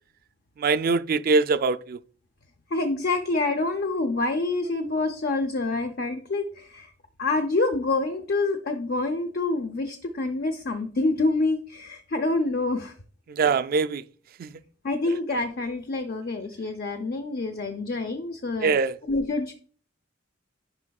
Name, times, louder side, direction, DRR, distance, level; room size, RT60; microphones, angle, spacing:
voice 1, 0.6-2.0 13.3-14.0 14.4-14.6 18.6-19.0, right 4 dB, 50° right, 0.3 m, -23 dB
voice 2, 2.7-6.9 7.2-12.9 14.8-18.7 19.1-19.5, left 2 dB, 50° left, 0.6 m, -27 dB
9.7 x 5.4 x 2.3 m
head